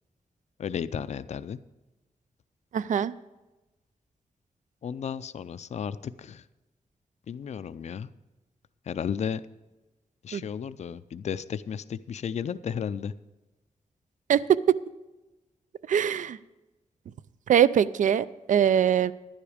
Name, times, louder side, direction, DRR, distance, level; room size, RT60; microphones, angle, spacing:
voice 1, 0.6-1.6 4.8-6.4 7.3-8.1 8.9-9.4 10.2-13.1, left 7 dB, 55° left, 15 dB, 0.4 m, -33 dB
voice 2, 2.7-3.1 10.3-10.4 14.3-14.4 14.7-14.8 15.9-16.4 17.5-19.1, right 9 dB, 70° right, 17 dB, 0.4 m, -22 dB
11.0 x 10.0 x 5.0 m, 1.1 s
wide cardioid pair, 120°, 13 cm